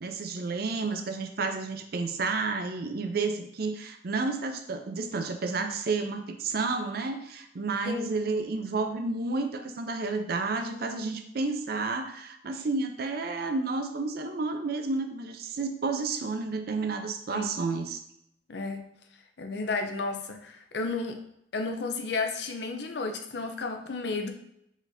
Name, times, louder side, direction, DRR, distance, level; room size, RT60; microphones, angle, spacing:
voice 1, 0.0-18.0, right 3 dB, 55° right, 6 dB, 0.5 m, -31 dB
voice 2, 7.8-8.2 17.3-17.5 18.5-18.9 19.4-21.2 21.5-24.3, left 3 dB, 65° left, 6 dB, 0.6 m, -32 dB
5.1 x 4.0 x 2.6 m, 0.76 s
head